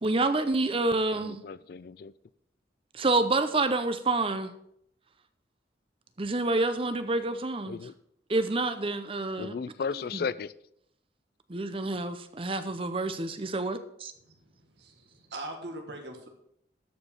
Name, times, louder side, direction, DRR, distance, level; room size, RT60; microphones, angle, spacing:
voice 1, 0.0-1.4 2.9-4.5 6.2-7.8 8.3-9.5 10.1-10.3 11.5-13.8, right 2 dB, 30° right, 0.7 m, -28 dB
voice 2, 1.2-2.1 7.7-7.9 9.4-10.5, left 5 dB, 55° left, 0.3 m, -35 dB
voice 3, 14.8-16.3, right 1 dB, 70° right, 1.7 m, -41 dB
13.0 x 5.1 x 5.6 m
head